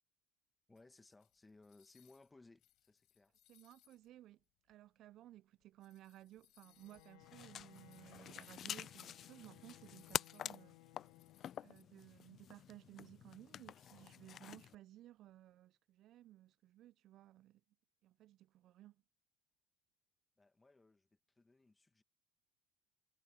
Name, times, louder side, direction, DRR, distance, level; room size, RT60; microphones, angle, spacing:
voice 1, 0.7-3.4 20.4-22.0, left 3 dB, 15° left, 1.7 m, -64 dB
sound 1, 0.8-2.3 2.6-4.1 4.7-4.8 5.6-11.8, left 16 dB, 60° left, 6.2 m, -70 dB
voice 2, 3.5-10.8 11.6-17.6 18.0-19.0, right 14 dB, 55° right, 0.4 m, -58 dB
Bowed string instrument, 6.6-12.0, left 20 dB, 75° left, 1.9 m, -64 dB
sound 2, 7.2-14.8, left 10 dB, 45° left, 0.5 m, -47 dB
supercardioid pair, 95°, 0 cm